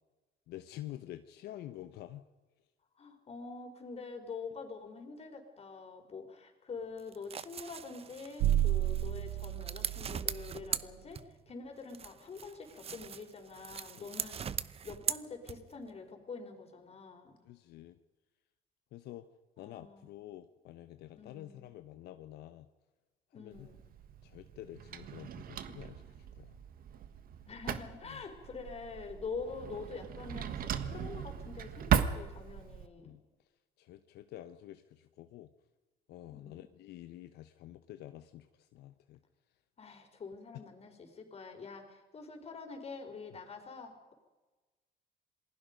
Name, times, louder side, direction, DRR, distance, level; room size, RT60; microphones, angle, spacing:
voice 1, 0.5-2.3 14.0-14.1 17.4-18.0 18.9-19.3 19.6-22.7 23.3-23.7 24.2-26.6 28.0-28.2 33.0-33.2 33.8-35.5 36.1-39.2, left 13 dB, 75° left, 9 dB, 1.0 m, -49 dB
voice 2, 3.0-11.2 11.5-14.4 14.8-17.4 19.6-20.3 21.1-21.7 23.3-23.8 27.5-33.1 36.3-36.6 39.8-44.1, left 4 dB, 35° left, 4 dB, 4.7 m, -46 dB
sound 1, 7.0-11.5 11.9-15.9, right 7 dB, 35° right, 0.9 m, -40 dB
sound 2, 8.4-10.8, right 12 dB, 85° right, 0.8 m, -32 dB
Drawer open or close, 23.5-32.9, right 8 dB, 60° right, 1.5 m, -37 dB
27.5 x 20.5 x 5.3 m, 1.2 s
cardioid pair, 110°, 17 cm